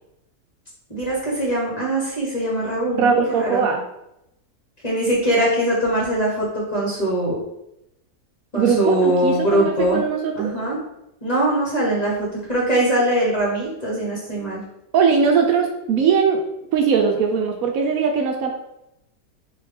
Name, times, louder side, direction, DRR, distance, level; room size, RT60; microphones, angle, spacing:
voice 1, 0.9-3.6 4.8-7.4 8.5-10.0 10.3-10.8 11.2-14.6, right 1 dB, 30° left, -4 dB, 1.1 m, -22 dB
voice 2, 3.0-3.8 8.6-10.3 14.9-16.4 16.7-18.5, right 6 dB, 70° right, 3 dB, 1.0 m, -20 dB
4.8 x 2.7 x 3.4 m, 0.84 s
omnidirectional pair, 1.6 m